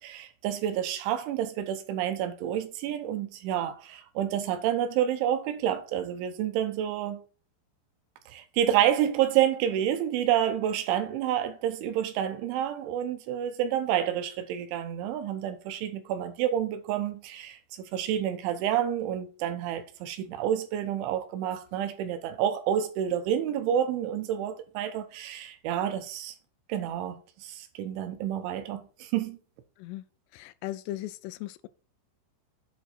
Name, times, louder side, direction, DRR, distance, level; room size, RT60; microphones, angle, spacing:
voice 1, 0.0-7.2 8.3-17.6 17.9-26.4 26.7-29.4, right 10 dB, 80° right, 3.1 m, -29 dB
voice 2, 30.3-31.7, left 15 dB, 85° left, 3.1 m, -37 dB
8.0 x 5.0 x 4.3 m
omnidirectional pair, 5.7 m